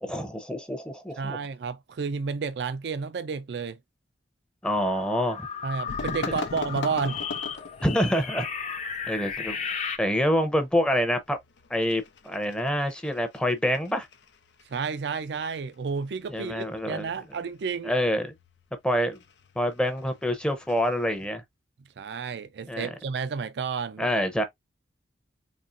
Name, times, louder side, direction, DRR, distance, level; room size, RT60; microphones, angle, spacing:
voice 1, 0.0-1.4 4.6-5.5 7.8-8.5 9.1-9.6 10.0-11.4 11.7-14.1 16.3-17.1 17.8-18.3 18.8-19.2 19.6-21.4 22.7-22.9 24.0-24.4, equal, 5° left, 0.6 m, -26 dB
voice 2, 1.2-3.8 5.6-7.2 14.7-17.9 22.0-24.1, right 5 dB, 70° right, 0.4 m, -31 dB
sound 1, 4.6-10.0, left 6 dB, 40° left, 0.7 m, -35 dB
sound 2, 5.9-21.3, left 4 dB, 90° left, 0.6 m, -42 dB
4.3 x 2.9 x 2.4 m
head